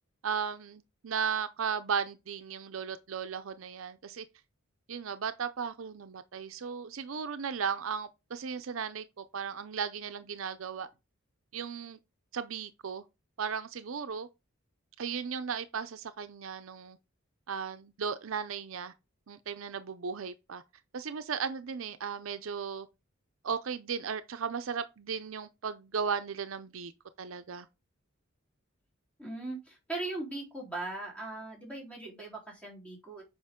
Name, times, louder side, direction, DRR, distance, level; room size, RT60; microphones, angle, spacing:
voice 1, 0.2-4.3 4.9-10.9 11.5-12.0 12.3-13.0 13.4-14.3 15.0-17.0 17.5-18.9 19.3-20.6 20.9-22.9 23.4-26.9 27.2-27.7, right 6 dB, 70° right, 0.5 m, -36 dB
voice 2, 29.2-33.2, right 2 dB, 5° left, 3.7 m, -39 dB
7.8 x 5.0 x 3.7 m
head